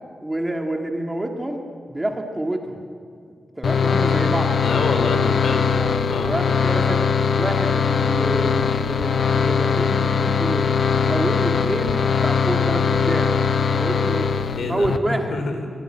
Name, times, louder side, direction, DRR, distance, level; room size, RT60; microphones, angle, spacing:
voice 1, 0.2-1.6 1.9-2.8 3.6-4.5 5.8-7.0 7.3-10.7 11.0-13.3 13.7-14.4 14.7-15.4, right 1 dB, 10° right, 3 dB, 2.0 m, -27 dB
sound 1, 3.6-15.0, left 6 dB, 60° left, 0.8 m, -21 dB
voice 2, 4.6-5.7 6.0-6.3 14.6-15.7, left 3 dB, 80° left, 6 dB, 3.7 m, -27 dB
23.0 x 21.0 x 9.0 m, 2.2 s
wide cardioid pair, 170°, 0 cm